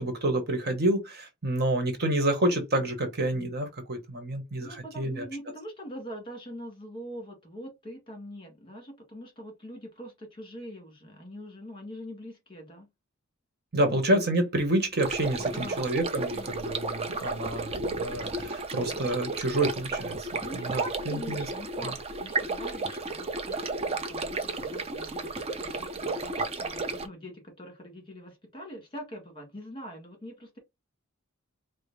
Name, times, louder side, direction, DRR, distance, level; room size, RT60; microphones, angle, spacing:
voice 1, 0.0-5.2 13.7-20.3 20.5-21.4, right 1 dB, 50° right, 1.1 m, -28 dB
voice 2, 4.6-12.9 13.8-14.0 15.5-15.9 16.3-16.6 18.7-19.0 20.4-30.6, equal, 25° left, 1.8 m, -43 dB
sound 1, 15.0-27.1, right 3 dB, 30° right, 0.6 m, -33 dB
4.9 x 2.0 x 4.0 m
head